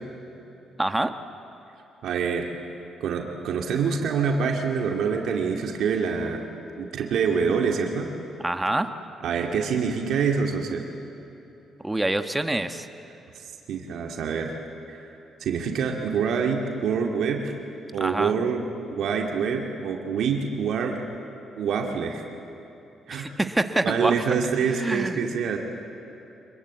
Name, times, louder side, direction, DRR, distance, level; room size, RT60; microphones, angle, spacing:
voice 1, 0.8-1.1 8.4-8.9 11.8-12.9 17.9-18.3 23.1-24.2 24.6-25.3, right 1 dB, 10° right, 8 dB, 1.3 m, -26 dB
voice 2, 2.0-2.5 3.0-6.4 6.8-8.1 9.2-10.9 13.7-14.5 14.9-15.1 15.4-17.6 17.9-18.6 18.9-21.0 21.6-22.2 23.1-23.3 23.8-25.6, right 6 dB, 75° right, 2 dB, 2.3 m, -26 dB
25.5 x 21.5 x 8.5 m, 3.0 s
cardioid pair, 90°, 0 cm